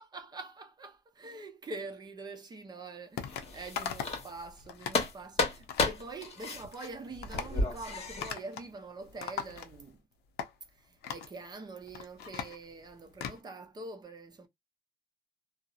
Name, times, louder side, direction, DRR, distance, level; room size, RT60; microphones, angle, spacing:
voice 1, 0.0-10.0 10.8-14.5, right 3 dB, 25° right, 0.6 m, -45 dB
sound 1, 3.2-3.5 3.8-4.2 4.6-5.0 5.7-6.0 6.5-6.9 7.2-7.6 8.2-8.7 9.0-9.9 10.4-10.5 11.0-11.3 11.8-13.4, left 8 dB, 75° left, 0.5 m, -39 dB
sound 2, 3.2-4.6 4.9-8.3, left 3 dB, 40° left, 1.0 m, -33 dB
2.6 x 2.0 x 2.3 m
cardioid pair, 110°, 17 cm